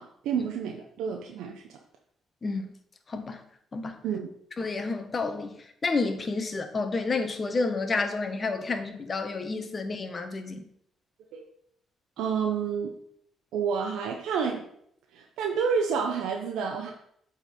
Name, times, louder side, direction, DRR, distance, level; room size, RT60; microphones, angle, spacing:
voice 1, 0.0-1.8 4.0-4.3 11.3-11.5 12.2-13.0 13.5-14.7 15.1-16.9, right 6 dB, 90° right, 2 dB, 0.7 m, -29 dB
voice 2, 3.1-3.4 3.7-4.0 4.6-5.5 5.8-10.6, left 3 dB, 35° left, 8 dB, 0.9 m, -30 dB
7.9 x 3.8 x 4.2 m, 0.71 s
cardioid pair, 90°, 0 cm